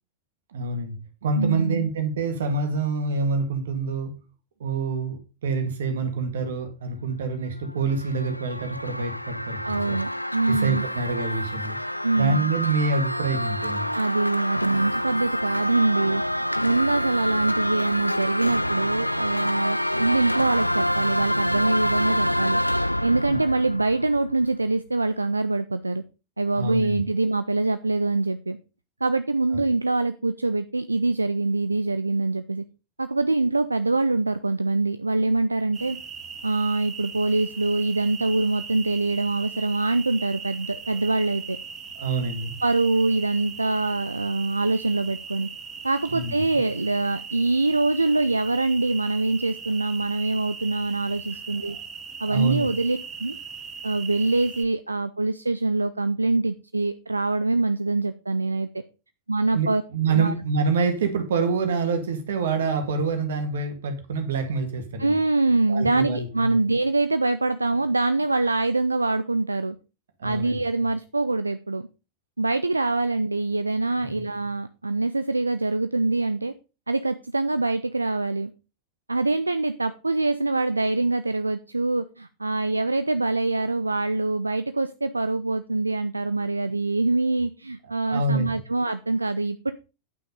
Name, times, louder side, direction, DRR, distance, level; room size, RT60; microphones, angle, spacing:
voice 1, 0.5-4.1 4.6-9.6 9.9-10.0 10.5-11.8 12.2-13.9 23.3-23.4 26.5-27.0 42.0-42.5 46.1-46.3 52.3-52.7 59.5-65.2 65.7-66.5 70.2-70.6 74.1-74.2 88.1-88.5, right 4 dB, 60° right, 7 dB, 2.0 m, -26 dB
voice 2, 1.4-1.9 9.6-10.9 12.0-12.5 13.9-26.0 26.4-28.6 29.0-32.6 33.0-36.0 36.4-41.6 42.6-45.5 45.8-51.8 52.2-53.3 53.8-58.7 59.3-59.8 60.1-60.3 65.0-69.8 70.2-71.8 72.4-76.5 76.9-78.5 79.1-89.7, right 2 dB, 80° right, 12 dB, 0.5 m, -24 dB
sound 1, 7.7-24.6, equal, 90° left, 0.5 m, -27 dB
sound 2, 35.7-54.6, right 6 dB, 25° right, 2.4 m, -39 dB
9.4 x 5.9 x 5.3 m, 0.32 s
figure-of-eight pair, 90°, 0 cm